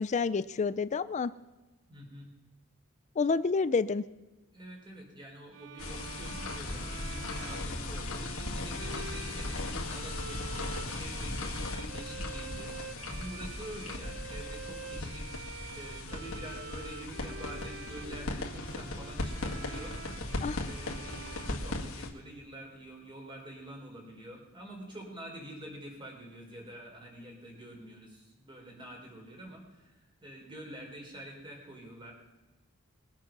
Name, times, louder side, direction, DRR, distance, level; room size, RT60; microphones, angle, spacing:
voice 1, 0.0-1.3 3.2-4.0 20.4-20.7, left 4 dB, 30° left, 14 dB, 0.4 m, -29 dB
voice 2, 1.9-2.3 4.5-12.7 13.1-32.1, right 1 dB, 20° right, 0 dB, 3.9 m, -47 dB
sound 1, 5.5-22.4, right 5 dB, 60° right, 0.8 m, -47 dB
sound 2, 5.8-22.1, left 2 dB, 65° left, 2.0 m, -38 dB
21.5 x 7.4 x 6.0 m, 1.2 s
head